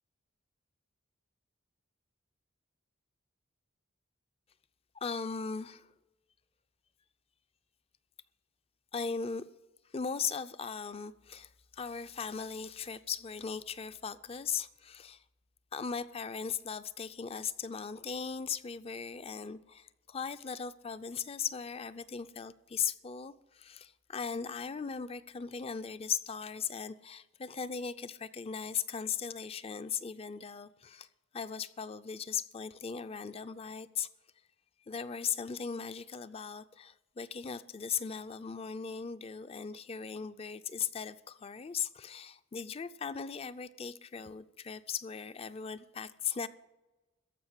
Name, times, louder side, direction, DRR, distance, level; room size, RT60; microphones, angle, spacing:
voice 1, 4.9-5.9 8.9-9.4 9.9-15.2 15.7-31.1 31.3-34.1 34.9-46.5, left 6 dB, 30° left, 0.4 m, -38 dB
14.5 x 5.8 x 9.7 m
head